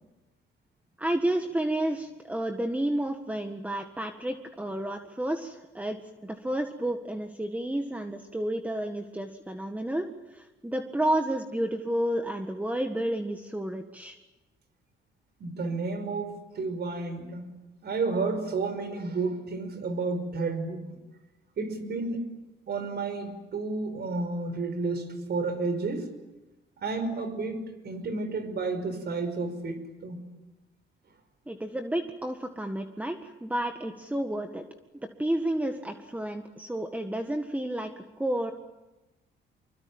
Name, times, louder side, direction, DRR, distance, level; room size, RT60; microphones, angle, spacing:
voice 1, 1.0-6.0 6.2-14.2 31.5-34.6 34.9-37.9 38.2-38.5, right 1 dB, 5° right, 6 dB, 1.7 m, -31 dB
voice 2, 15.4-17.5 17.8-20.9 21.6-22.2 22.7-26.1 26.8-30.2, right 3 dB, 55° right, 10 dB, 5.5 m, -31 dB
26.0 x 23.0 x 8.9 m, 1.1 s
cardioid pair, 90°, 20 cm